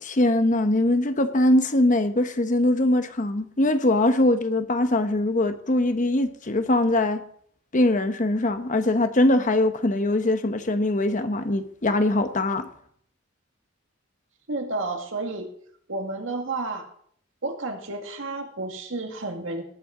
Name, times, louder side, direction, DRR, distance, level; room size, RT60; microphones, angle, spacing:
voice 1, 0.0-7.2 7.7-12.7, left 1 dB, 40° left, 0.9 m, -22 dB
voice 2, 14.5-15.5 15.9-16.8 17.4-19.6, right 2 dB, 75° right, 2.2 m, -31 dB
19.0 x 8.9 x 3.8 m
head